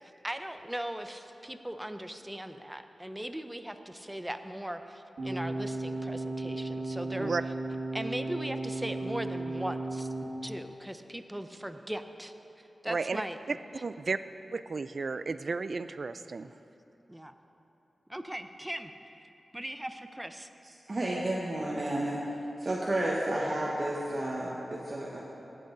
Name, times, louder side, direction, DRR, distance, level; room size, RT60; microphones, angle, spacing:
voice 1, 0.0-7.3 7.9-10.1 10.4-13.4 17.1-17.3 18.1-19.3 19.5-20.5, right 1 dB, 10° right, 8 dB, 0.6 m, -39 dB
sound 1, 5.2-10.2, right 2 dB, 80° right, 1.9 m, -35 dB
voice 2, 12.9-13.2 13.5-13.6 13.8-14.2 14.5-16.5, right 4 dB, 60° right, 13 dB, 0.3 m, -33 dB
voice 3, 20.9-22.2 22.6-25.2, right 1 dB, 40° right, -4 dB, 1.2 m, -31 dB
18.0 x 7.8 x 3.9 m, 2.9 s
wide cardioid pair, 85°, 0 cm